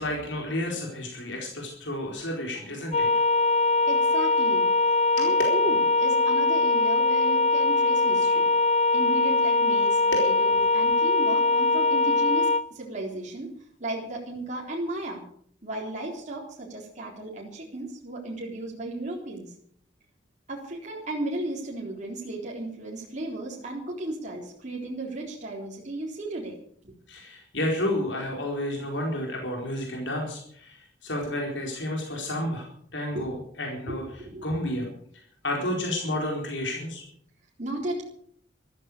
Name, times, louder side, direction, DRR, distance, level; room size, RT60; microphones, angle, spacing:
voice 1, 0.0-3.1 5.2-5.4 10.1-10.3 27.1-32.7 32.9-34.9 35.4-37.0, left 1 dB, 75° left, 0 dB, 4.3 m, -31 dB
sound 1, 2.9-12.7, left 3 dB, 40° left, 0.7 m, -22 dB
voice 2, 3.9-4.7 5.2-8.5 8.9-13.5 13.8-15.2 15.6-19.5 20.5-26.6 26.8-26.9 33.1-33.3 33.9-34.7 37.6-38.0, right 2 dB, 40° right, -2 dB, 3.7 m, -34 dB
14.0 x 14.0 x 6.7 m, 0.63 s
head